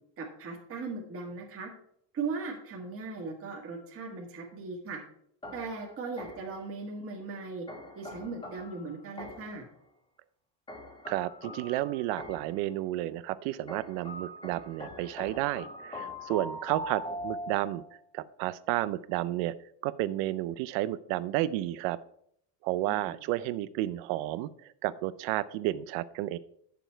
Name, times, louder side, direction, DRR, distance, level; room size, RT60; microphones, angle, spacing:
voice 1, 0.2-1.7 2.1-5.0 5.5-7.7 7.9-9.6 22.9-23.1, right 4 dB, 30° right, -1 dB, 1.7 m, -38 dB
sound 1, 5.4-6.6 7.7-9.6 10.7-12.6 13.7-18.0, equal, 10° left, 1.6 m, -42 dB
voice 2, 11.1-17.8 18.1-19.5 19.8-22.0 22.6-26.4, right 15 dB, 75° right, 17 dB, 0.7 m, -32 dB
9.0 x 7.0 x 4.5 m, 0.68 s
cardioid pair, 145°, 45 cm